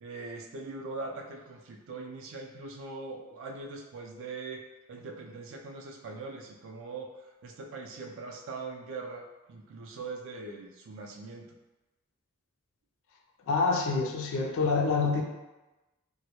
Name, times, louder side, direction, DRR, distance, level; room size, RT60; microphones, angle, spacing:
voice 1, 0.0-4.6 4.9-11.5, right 3 dB, 60° right, 1 dB, 0.4 m, -41 dB
voice 2, 13.5-15.2, left 4 dB, 60° left, 2 dB, 0.3 m, -26 dB
2.1 x 2.0 x 2.8 m, 1.1 s
head